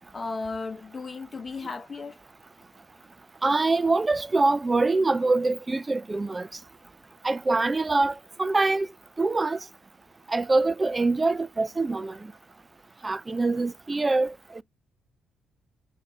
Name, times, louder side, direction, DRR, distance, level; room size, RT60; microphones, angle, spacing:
voice 1, 0.1-2.2, left 4 dB, 30° left, 0.9 m, -35 dB
voice 2, 3.4-6.5 7.2-8.9 9.2-9.6 10.3-12.2 13.0-14.6, right 3 dB, 20° right, 0.3 m, -24 dB
5.1 x 2.6 x 3.8 m
cardioid pair, 90°, 0 cm